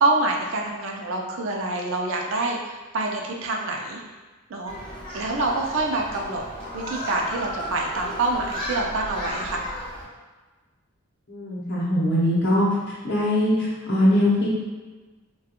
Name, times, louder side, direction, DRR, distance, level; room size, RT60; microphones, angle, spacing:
voice 1, 0.0-4.0 4.5-4.7 5.1-6.4 6.7-9.6, right 2 dB, 70° right, 0 dB, 0.4 m, -26 dB
Human group actions, 4.7-10.0, equal, 25° left, 0.8 m, -34 dB
voice 2, 11.3-12.7 13.0-14.5, left 1 dB, 55° left, -6 dB, 0.8 m, -21 dB
2.4 x 2.2 x 2.8 m, 1.3 s
head